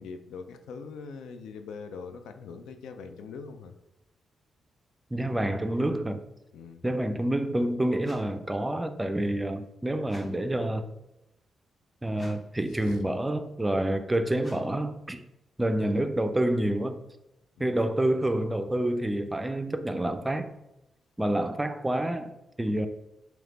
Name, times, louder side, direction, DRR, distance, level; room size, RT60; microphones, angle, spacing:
voice 1, 0.0-3.7 6.5-6.8 12.8-13.0 17.6-17.7, left 5 dB, 90° left, 8 dB, 0.3 m, -42 dB
voice 2, 5.1-6.2 6.8-10.8 12.0-15.2 15.6-17.0 17.6-20.5 21.2-22.9, right 1 dB, 15° right, 8 dB, 0.4 m, -28 dB
sound 1, 8.0-8.5 10.0-10.5 12.1-12.6 14.4-14.9, left 1 dB, 35° left, 1.2 m, -52 dB
3.3 x 3.0 x 3.7 m, 0.92 s
cardioid pair, 70°, 0 cm